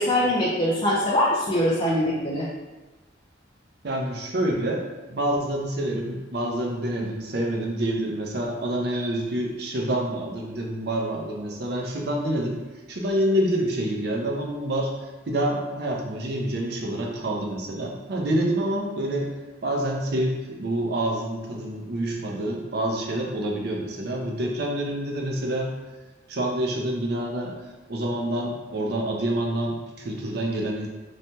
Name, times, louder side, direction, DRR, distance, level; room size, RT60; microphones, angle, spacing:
voice 1, 0.0-2.5, left 1 dB, 25° left, -6 dB, 0.4 m, -23 dB
voice 2, 3.8-12.6 12.9-19.3 19.6-25.7 26.3-27.6 27.9-30.9, right 1 dB, 60° right, 0 dB, 0.5 m, -27 dB
3.2 x 2.1 x 2.7 m, 1.2 s
head